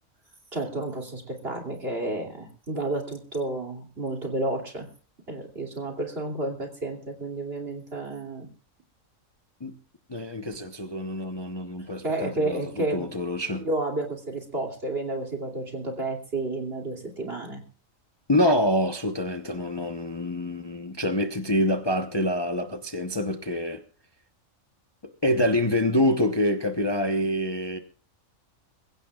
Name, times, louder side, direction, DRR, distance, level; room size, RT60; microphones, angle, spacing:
voice 1, 0.5-4.9 5.3-8.5 12.0-13.1 13.6-17.6, right 2 dB, 50° right, 3.1 m, -31 dB
voice 2, 10.1-13.7 18.3-23.8 25.0-27.8, left 1 dB, 20° left, 0.8 m, -26 dB
23.0 x 16.0 x 2.4 m
omnidirectional pair, 1.4 m